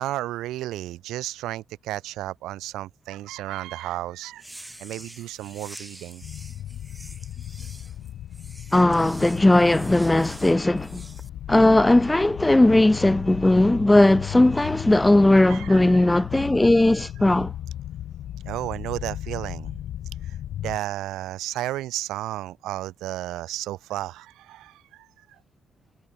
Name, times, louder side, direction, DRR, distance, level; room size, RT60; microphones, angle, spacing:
voice 1, 0.0-4.4 4.8-6.2 15.4-16.4 16.9-17.1 18.4-19.7 20.2-25.4, right 15 dB, 85° right, 1.6 m, -33 dB
sound 1, 4.3-11.3, right 1 dB, 10° right, 4.6 m, -46 dB
sound 2, 6.2-20.8, left 12 dB, 75° left, 1.6 m, -36 dB
voice 2, 8.7-11.0 11.5-17.5, left 1 dB, 10° left, 0.6 m, -18 dB
cardioid pair, 75°, 0 cm